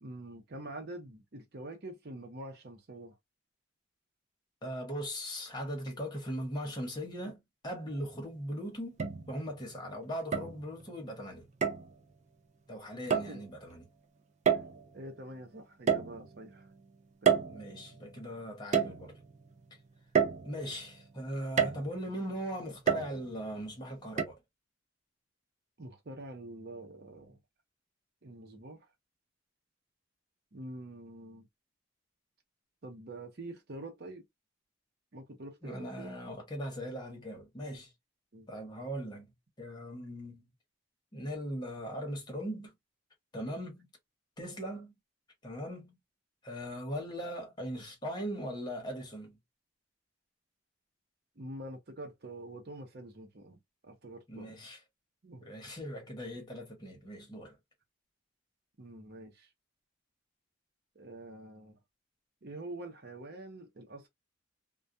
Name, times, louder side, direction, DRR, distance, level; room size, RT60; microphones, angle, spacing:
voice 1, 0.0-3.1 13.3-13.4 14.5-14.6 14.9-16.7 17.2-17.4 25.8-27.4 28.2-28.8 30.5-31.5 32.8-34.2 35.1-36.1 38.3-38.5 51.4-53.6 53.8-54.6 55.2-55.4 58.8-59.5 60.9-61.8 62.4-64.1, right 1 dB, 55° right, 0.8 m, -46 dB
voice 2, 4.6-9.0 9.3-11.5 12.7-13.9 17.5-19.2 20.4-24.4 35.6-37.9 38.5-39.3 39.6-40.5 41.1-42.7 43.3-43.9 44.4-44.9 45.4-46.0 46.4-49.4 54.3-54.8 55.4-57.6, equal, 25° left, 1.0 m, -39 dB
sound 1, 7.9-8.0 9.0-9.6 10.3-10.9 11.6-11.9 13.1-13.4 14.5-15.0 15.9-16.6 17.3-18.1 18.7-19.4 20.1-20.9 21.6-22.1 22.9-23.5 24.2-24.3, right 7 dB, 40° right, 0.3 m, -30 dB
2.3 x 2.2 x 2.6 m
head